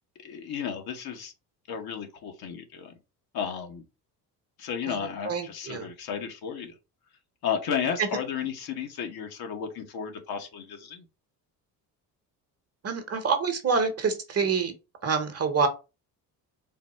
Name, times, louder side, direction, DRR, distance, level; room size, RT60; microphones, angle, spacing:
voice 1, 0.2-1.3 1.7-2.9 3.3-3.8 4.6-6.7 7.4-11.0, left 7 dB, 60° left, 1.1 m, -33 dB
voice 2, 5.2-5.9 8.0-8.1 12.8-14.7 15.0-15.7, right 5 dB, 35° right, 1.0 m, -26 dB
4.0 x 2.0 x 4.1 m
supercardioid pair, 85°, 41 cm